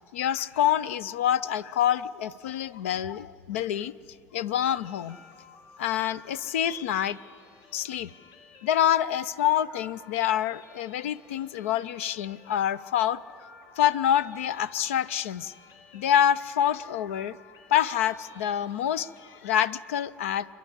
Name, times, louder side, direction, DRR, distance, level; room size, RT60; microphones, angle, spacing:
voice 1, 0.1-3.9 4.3-5.2 5.8-7.2 7.7-8.1 8.6-13.2 13.8-15.5 15.9-17.4 17.7-20.5, left 10 dB, 70° left, 19 dB, 0.5 m, -26 dB
sound 1, 4.6-19.4, left 5 dB, 50° left, 1.5 m, -54 dB
28.5 x 11.0 x 9.8 m, 2.6 s
figure-of-eight pair, 65°, 7 cm